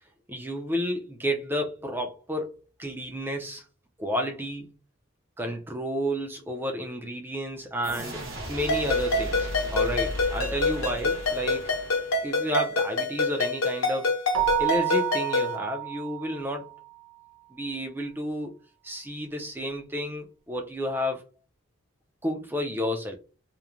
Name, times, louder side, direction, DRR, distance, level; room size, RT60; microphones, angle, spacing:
voice 1, 0.3-2.5 2.8-3.7 4.0-4.8 5.4-11.7 12.2-14.2 14.6-16.7 17.5-18.5 18.8-21.2 22.2-23.2, equal, 10° right, 0.4 m, -31 dB
sound 1, 7.8-12.5, equal, 65° right, 0.9 m, -36 dB
Ringtone, 8.7-15.5, left 2 dB, 70° left, 0.9 m, -27 dB
Keyboard (musical), 14.3-16.8, right 15 dB, 90° right, 0.5 m, -29 dB
2.9 x 2.1 x 2.4 m
head